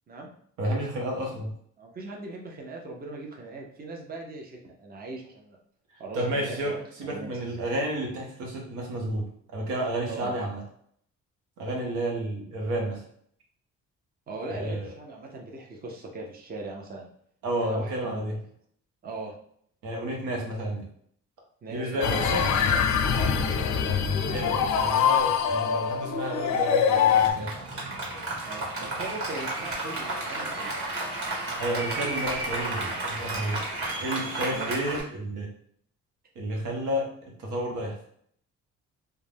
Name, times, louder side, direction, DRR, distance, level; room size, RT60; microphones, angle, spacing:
voice 1, 0.6-1.5 6.1-10.6 11.6-13.0 14.5-14.9 17.4-18.4 19.8-20.9 21.7-22.4 24.3-27.5 31.6-33.6 34.0-35.5 36.3-37.1 37.4-38.0, right 1 dB, 85° right, -1 dB, 0.9 m, -31 dB
voice 2, 1.8-5.6 6.0-7.3 10.1-10.4 14.3-17.1 17.6-18.3 19.0-19.3 21.6-22.1 23.2-24.0 28.4-30.7 34.5-34.8, right 2 dB, 30° right, 0 dB, 0.7 m, -39 dB
sound 1, 22.0-27.3, left 7 dB, 70° left, 0.5 m, -24 dB
Applause, 27.2-35.0, right 2 dB, 50° right, 1.4 m, -32 dB
2.4 x 2.2 x 3.3 m, 0.64 s
cardioid pair, 90°, 30 cm